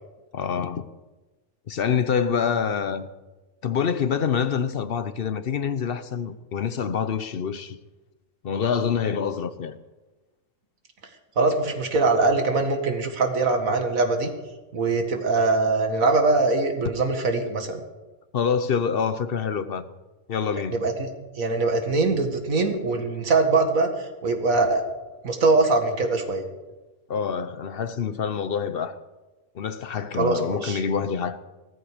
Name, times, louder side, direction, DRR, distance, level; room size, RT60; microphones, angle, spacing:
voice 1, 0.3-0.9 1.7-3.1 3.6-7.8 8.4-9.8 18.3-19.9 20.3-20.8 27.1-29.0 29.5-31.4, left 7 dB, 50° left, 0.8 m, -26 dB
voice 2, 11.4-14.3 14.7-17.8 20.7-21.1 21.4-24.8 25.2-26.4 30.2-30.8, right 3 dB, 70° right, 2.2 m, -22 dB
17.0 x 14.0 x 5.0 m
omnidirectional pair, 1.5 m